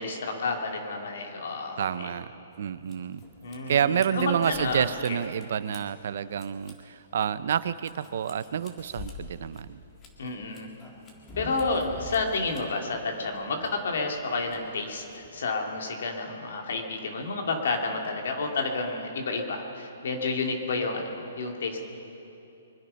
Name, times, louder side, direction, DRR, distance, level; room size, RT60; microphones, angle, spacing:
voice 1, 0.0-2.1 3.4-5.2 10.2-10.7 11.4-21.8, left 3 dB, 70° left, 2 dB, 2.5 m, -30 dB
voice 2, 1.8-2.3 2.6-3.2 3.7-9.8, right 8 dB, 60° right, 15 dB, 0.6 m, -28 dB
sound 1, 2.5-15.4, left 2 dB, 20° left, 2.0 m, -48 dB
24.0 x 10.5 x 5.7 m, 2.8 s
hypercardioid pair, 160°, 0 cm